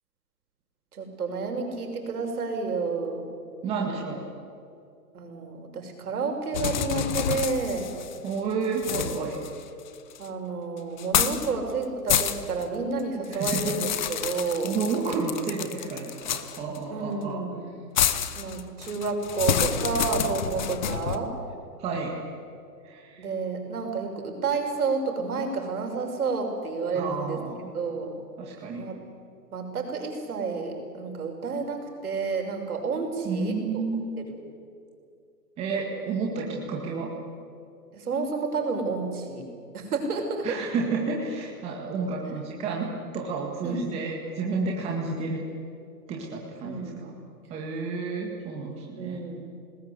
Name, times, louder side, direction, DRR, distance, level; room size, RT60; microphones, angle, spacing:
voice 1, 0.9-3.3 5.1-7.9 10.2-14.8 16.9-17.7 18.3-21.3 23.2-27.4 27.7-28.1 28.8-29.0 29.5-33.8 34.2-34.4 37.9-39.5 39.7-40.5 43.6-43.8 46.6-47.1 49.0-49.4, right 4 dB, 60° right, 3 dB, 6.2 m, -30 dB
voice 2, 3.6-4.3 8.2-9.4 13.3-13.7 14.6-17.4 21.8-22.1 22.8-23.3 26.9-27.7 28.4-29.0 33.2-34.1 35.6-37.1 40.4-45.4 46.1-47.1 47.5-49.2, right 4 dB, 10° right, -2 dB, 1.9 m, -31 dB
sound 1, 6.5-8.3 8.8-10.3 11.0-11.5 11.8-12.6 13.0-16.8 18.0-21.2, left 9 dB, 30° left, 0.9 m, -28 dB
28.0 x 19.5 x 8.2 m, 2.4 s
hypercardioid pair, 160°, 50 cm